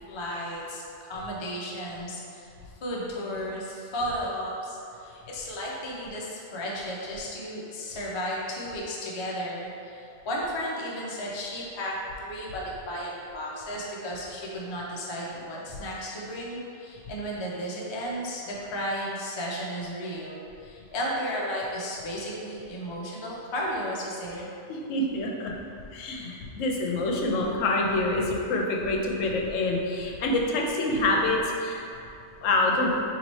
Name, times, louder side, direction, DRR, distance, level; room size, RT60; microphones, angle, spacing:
voice 1, 0.1-2.5 2.8-24.5, equal, 50° left, -4 dB, 0.3 m, -34 dB
voice 2, 24.7-25.5 25.9-31.8 32.4-32.9, left 2 dB, 80° left, 0 dB, 0.9 m, -26 dB
3.0 x 2.8 x 4.0 m, 2.6 s
omnidirectional pair, 1.3 m